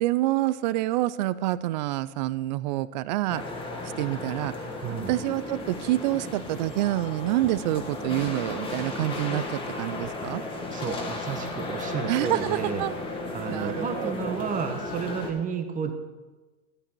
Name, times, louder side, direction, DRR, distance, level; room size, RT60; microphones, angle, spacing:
voice 1, 0.0-3.4 4.0-4.5 5.1-10.4 12.1-12.9 13.5-14.5, right 16 dB, 35° right, 18 dB, 0.4 m, -27 dB
sound 1, 3.3-15.3, left 2 dB, 10° left, 1.8 m, -35 dB
voice 2, 4.8-5.2 10.7-12.8 13.3-15.9, right 6 dB, 20° right, 7 dB, 1.2 m, -31 dB
13.5 x 11.0 x 4.5 m, 1.2 s
hypercardioid pair, 125°, 41 cm